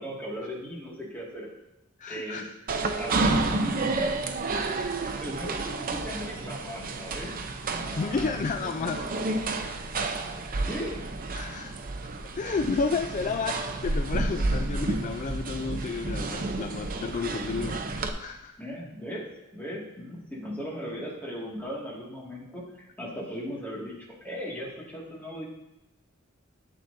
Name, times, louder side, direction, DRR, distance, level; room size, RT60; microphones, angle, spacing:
voice 1, 0.0-1.5 2.1-2.5 2.8-4.2 5.2-7.4 7.7-8.9 10.6-11.0 18.6-25.4, equal, 10° left, -4 dB, 2.0 m, -38 dB
voice 2, 2.0-2.5 4.7-5.0 8.0-9.0 10.6-10.7 11.3-11.8 12.4-18.5, left 4 dB, 40° left, 6 dB, 0.3 m, -31 dB
sound 1, 2.7-18.1, right 2 dB, 45° right, 0.7 m, -30 dB
12.0 x 7.6 x 2.7 m, 0.99 s
head